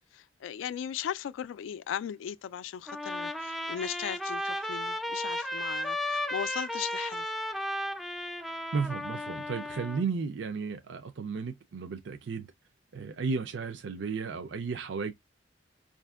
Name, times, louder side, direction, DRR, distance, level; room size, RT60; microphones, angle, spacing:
voice 1, 0.1-7.3, left 9 dB, 90° left, 0.3 m, -37 dB
Trumpet, 2.9-10.0, left 1 dB, ahead, 0.3 m, -34 dB
voice 2, 8.7-12.5 12.9-15.1, right 5 dB, 70° right, 0.4 m, -34 dB
4.9 x 2.5 x 2.3 m
head